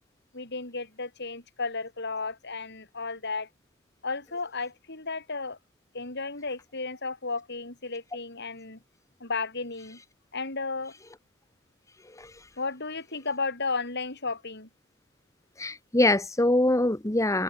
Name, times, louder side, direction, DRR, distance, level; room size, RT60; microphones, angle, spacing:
voice 1, 0.3-3.5 4.0-5.6 5.9-8.8 9.2-10.0 10.3-10.9 12.6-14.7, left 3 dB, 55° left, 5.3 m, -33 dB
voice 2, 12.2-12.5 15.6-17.4, left 1 dB, 15° left, 1.4 m, -24 dB
head